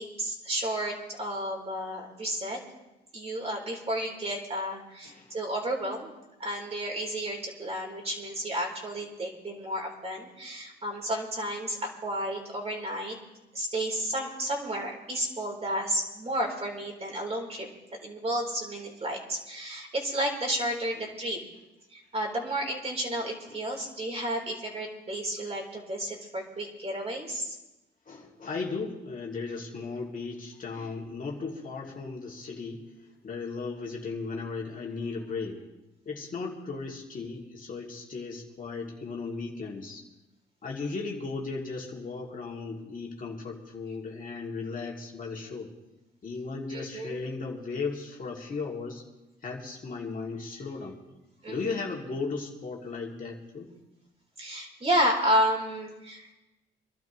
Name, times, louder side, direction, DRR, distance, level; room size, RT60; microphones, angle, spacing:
voice 1, 0.0-2.6 3.1-6.1 6.4-13.2 13.5-17.7 18.0-21.4 21.9-27.6 46.7-47.2 51.4-51.8 54.4-56.3, equal, 30° right, 0 dB, 3.9 m, -31 dB
voice 2, 5.0-5.4 23.4-23.6 28.1-32.8 33.2-35.6 36.0-40.0 40.6-45.7 46.2-49.0 49.4-51.0 51.5-53.7, left 4 dB, 45° left, -2 dB, 2.7 m, -36 dB
25.5 x 12.0 x 3.1 m, 1.0 s
cardioid pair, 90°, 20 cm